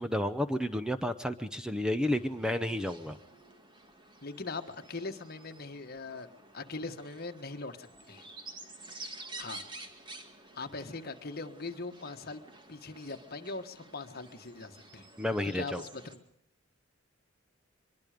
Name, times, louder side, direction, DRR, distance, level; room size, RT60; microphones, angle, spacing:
voice 1, 0.0-3.2 15.2-15.8, left 1 dB, 5° right, 9 dB, 0.8 m, -31 dB
sound 1, 2.1-16.2, right 2 dB, 25° right, 2.1 m, -50 dB
voice 2, 4.2-6.3 6.5-8.3 9.4-9.6 10.5-12.4 12.7-15.1 15.5-16.2, left 3 dB, 50° left, 6 dB, 1.6 m, -41 dB
24.0 x 22.5 x 5.1 m, 0.73 s
head